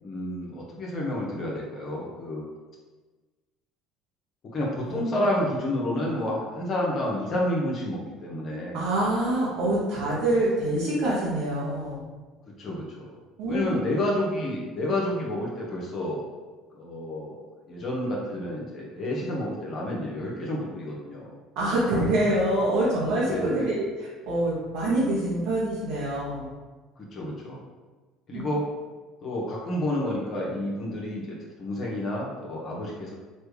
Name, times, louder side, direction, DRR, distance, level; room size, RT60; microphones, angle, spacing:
voice 1, 0.0-2.4 4.5-8.8 12.6-13.1 13.5-16.2 16.7-17.4 17.7-21.3 23.2-23.7 27.0-27.6 28.3-28.6 29.2-33.2, left 1 dB, 50° left, -3 dB, 0.9 m, -30 dB
voice 2, 8.7-12.0 13.4-13.8 21.6-26.5 28.3-28.5, right 1 dB, 75° right, -8 dB, 0.8 m, -26 dB
3.2 x 2.2 x 3.2 m, 1.3 s
hypercardioid pair, 70°, 0 cm